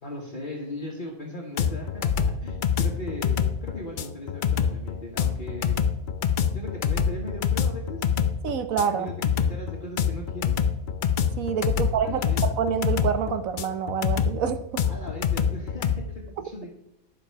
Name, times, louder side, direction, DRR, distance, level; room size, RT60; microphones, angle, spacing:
voice 1, 0.0-5.8 6.5-8.1 8.9-10.6 11.7-12.4 14.9-16.7, left 1 dB, 35° left, -2 dB, 1.4 m, -38 dB
sound 1, 1.6-16.0, left 7 dB, 55° left, 0.5 m, -25 dB
voice 2, 8.4-9.1 11.4-14.8, right 7 dB, 75° right, 10 dB, 1.1 m, -27 dB
10.5 x 7.3 x 4.5 m, 0.82 s
omnidirectional pair, 1.5 m